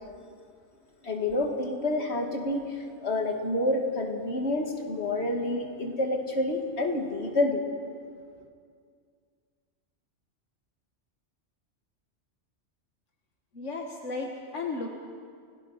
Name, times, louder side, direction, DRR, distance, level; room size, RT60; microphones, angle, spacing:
voice 1, 1.0-7.6, left 2 dB, 60° left, 2 dB, 2.4 m, -28 dB
voice 2, 13.5-14.9, left 3 dB, 80° left, 1 dB, 1.9 m, -34 dB
29.5 x 18.0 x 5.8 m, 2.2 s
omnidirectional pair, 1.2 m